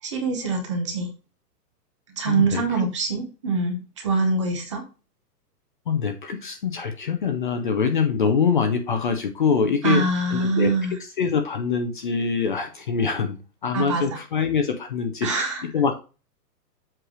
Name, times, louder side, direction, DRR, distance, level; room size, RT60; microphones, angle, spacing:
voice 1, 0.0-1.1 2.2-4.8 9.8-10.9 13.7-14.2 15.2-15.6, right 3 dB, 20° right, 4 dB, 0.8 m, -24 dB
voice 2, 2.3-2.8 5.9-10.7 11.2-13.4 13.6-15.3 15.7-16.0, left 6 dB, 30° left, 7 dB, 0.6 m, -24 dB
7.6 x 3.3 x 6.1 m, 0.32 s
hypercardioid pair, 175°, 49 cm